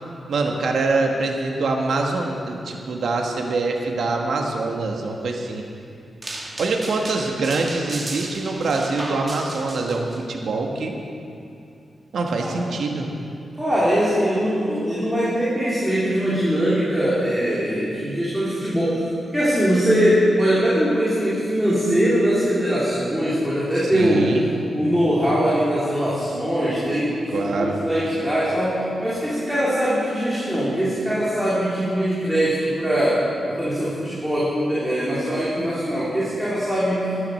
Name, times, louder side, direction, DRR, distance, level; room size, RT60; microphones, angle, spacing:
voice 1, 0.3-5.6 6.6-11.0 12.1-13.1 23.9-24.4 27.3-27.8, right 3 dB, 75° right, 1 dB, 1.3 m, -24 dB
sound 1, 6.2-10.2, right 2 dB, 25° right, 1.3 m, -35 dB
voice 2, 13.6-19.1 19.3-24.3 24.7-37.3, equal, 5° right, -9 dB, 3.0 m, -22 dB
12.0 x 9.5 x 6.5 m, 2.6 s
wide cardioid pair, 115°, 0 cm